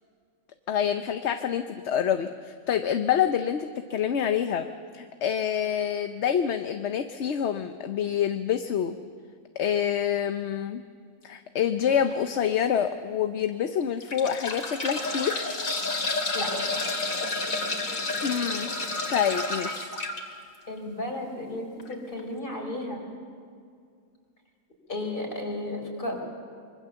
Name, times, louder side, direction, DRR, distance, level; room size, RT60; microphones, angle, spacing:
voice 1, 0.7-4.7 4.9-9.0 9.6-10.8 11.2-15.3 18.2-18.7 19.1-19.9, left 8 dB, 60° left, 8 dB, 1.0 m, -27 dB
sound 1, 11.9-12.1 12.8-12.9 13.8-20.2 21.8-21.9 22.2-22.3, left 2 dB, 85° left, 2.7 m, -30 dB
voice 2, 20.7-23.0 24.9-26.2, left 1 dB, 40° left, 1 dB, 4.5 m, -33 dB
25.0 x 23.0 x 7.0 m, 2.2 s
omnidirectional pair, 1.4 m